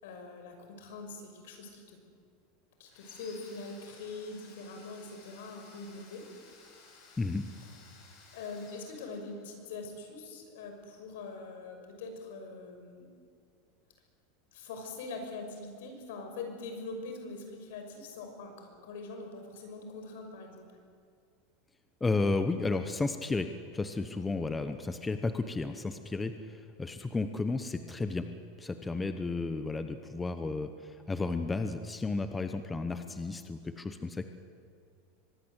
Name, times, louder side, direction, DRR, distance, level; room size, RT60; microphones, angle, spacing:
voice 1, 0.0-2.0 2.8-6.2 8.3-13.1 14.5-20.7, left 3 dB, 75° left, 4 dB, 6.0 m, -43 dB
Domestic sounds home sounds, 2.9-9.7, left 4 dB, 40° left, 6.1 m, -57 dB
voice 2, 22.0-28.3 28.6-34.2, left 3 dB, 10° left, 8 dB, 0.9 m, -33 dB
24.0 x 21.0 x 8.2 m, 2.3 s
supercardioid pair, 165°, 0 cm